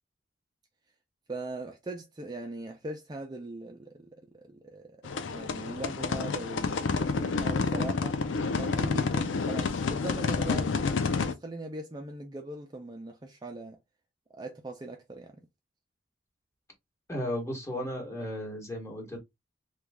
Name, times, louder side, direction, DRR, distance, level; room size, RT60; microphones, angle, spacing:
voice 1, 1.3-4.1 4.3-8.2 8.5-13.8 14.3-15.4, right 2 dB, 20° right, 0.4 m, -40 dB
sound 1, 5.0-11.3, left 4 dB, 85° left, 0.5 m, -29 dB
voice 2, 17.1-19.2, left 1 dB, 15° left, 1.2 m, -34 dB
3.1 x 2.3 x 3.4 m
head